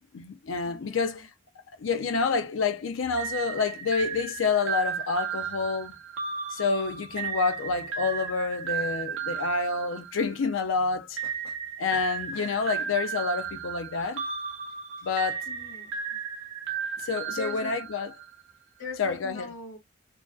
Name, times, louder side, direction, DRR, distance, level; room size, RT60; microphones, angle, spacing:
voice 1, 0.1-1.3 1.8-5.9 6.5-11.3 11.8-14.2 15.0-15.5 17.0-18.1 19.0-19.5, left 4 dB, 90° left, 0.5 m, -28 dB
voice 2, 0.6-1.3 15.4-16.2 17.3-17.9 18.8-19.8, left 4 dB, 60° left, 0.8 m, -42 dB
sound 1, 3.2-10.6 11.2-18.4, right 7 dB, 85° right, 0.6 m, -34 dB
2.4 x 2.3 x 2.4 m
head